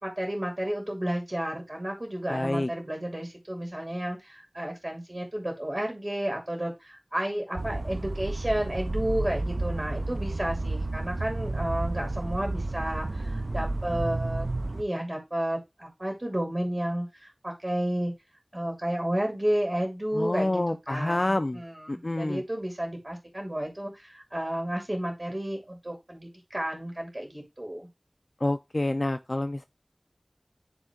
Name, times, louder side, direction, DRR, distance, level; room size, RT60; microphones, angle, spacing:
voice 1, 0.0-14.5 14.7-18.1 18.5-27.9, right 1 dB, 45° right, 2.5 m, -32 dB
voice 2, 2.3-2.7 20.1-21.6 21.9-22.4 28.4-29.7, left 2 dB, 60° left, 0.4 m, -28 dB
sound 1, 7.6-14.8, right 2 dB, 85° right, 0.6 m, -31 dB
11.0 x 3.7 x 3.6 m
wide cardioid pair, 40°, 0 cm